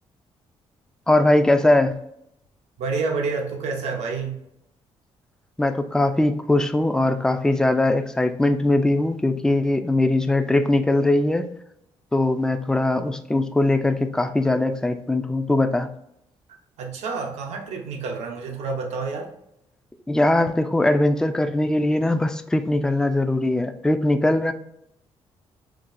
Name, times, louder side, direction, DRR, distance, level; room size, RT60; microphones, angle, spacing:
voice 1, 1.1-2.0 5.6-11.5 12.1-15.9 20.1-24.5, left 2 dB, 5° left, 8 dB, 0.4 m, -21 dB
voice 2, 2.8-4.4 16.8-19.3, right 4 dB, 85° right, 2 dB, 0.8 m, -28 dB
5.9 x 2.3 x 2.6 m, 0.76 s
cardioid pair, 85°, 11 cm